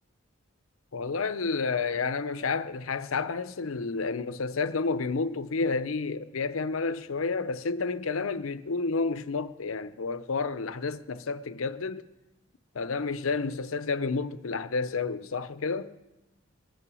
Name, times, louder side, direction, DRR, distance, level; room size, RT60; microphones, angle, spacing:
voice 1, 0.9-12.1 12.7-15.9, left 4 dB, 90° left, 0.7 m, -30 dB
22.0 x 9.1 x 6.2 m
head